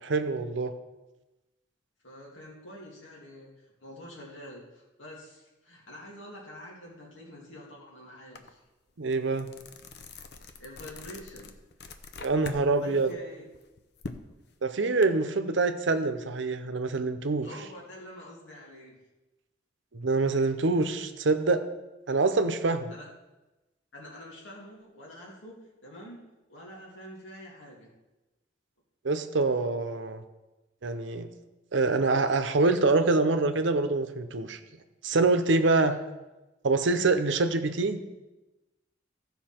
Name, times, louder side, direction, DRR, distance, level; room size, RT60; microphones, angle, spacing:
voice 1, 0.0-0.7 9.0-9.5 12.2-13.1 14.6-17.5 19.9-21.6 22.1-22.9 29.0-30.2 30.8-31.3 31.7-34.6 35.0-35.9 36.6-38.0, right 3 dB, 80° right, 9 dB, 0.7 m, -25 dB
voice 2, 2.0-8.6 10.6-11.5 12.8-13.5 17.4-19.0 22.9-23.1 23.9-27.9 35.7-36.0, equal, 85° left, -3 dB, 2.6 m, -46 dB
sound 1, 8.4-8.5 8.9-12.6 13.0-15.1, left 3 dB, 60° left, 0.7 m, -44 dB
14.5 x 5.6 x 4.4 m, 1.1 s
head